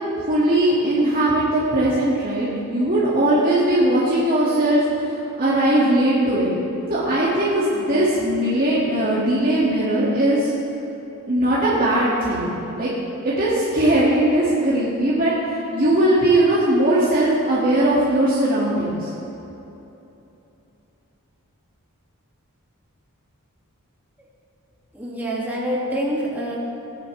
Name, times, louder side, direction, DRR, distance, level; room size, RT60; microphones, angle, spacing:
voice 1, 0.3-6.5 6.9-10.5 11.3-12.9 13.2-19.1, right 1 dB, 40° right, -9 dB, 2.2 m, -19 dB
voice 2, 24.9-26.6, equal, 10° right, -6 dB, 2.4 m, -26 dB
19.0 x 10.0 x 3.4 m, 3.0 s
head